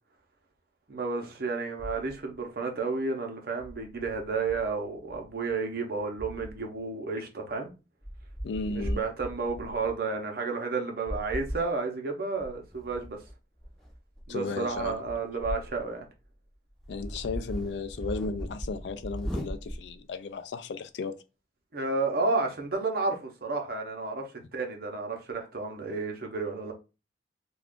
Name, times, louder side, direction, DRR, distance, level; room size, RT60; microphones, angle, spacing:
voice 1, 0.9-7.7 8.7-13.2 14.3-16.1 21.7-26.7, right 3 dB, 55° right, 0.7 m, -31 dB
sound 1, 1.8-2.3 3.6-5.5 6.2-6.8 7.5-7.6 8.0-10.0 11.1-11.7 12.4-15.8 16.2-16.3 16.8-20.0, equal, 5° left, 0.6 m, -39 dB
voice 2, 8.4-9.0 14.3-15.0 16.9-21.2, left 4 dB, 75° left, 0.4 m, -35 dB
2.4 x 2.3 x 3.5 m
head